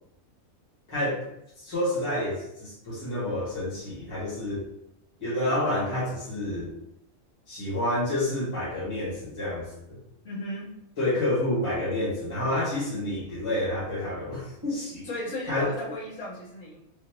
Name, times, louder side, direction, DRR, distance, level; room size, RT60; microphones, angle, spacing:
voice 1, 0.9-1.2 1.6-4.7 5.2-6.7 7.5-10.0 11.0-15.1 15.4-15.7, left 1 dB, 20° left, -9 dB, 1.4 m, -29 dB
voice 2, 10.2-10.7 15.0-16.8, left 1 dB, 75° left, -9 dB, 1.5 m, -35 dB
3.6 x 2.5 x 2.8 m, 0.80 s
omnidirectional pair, 1.4 m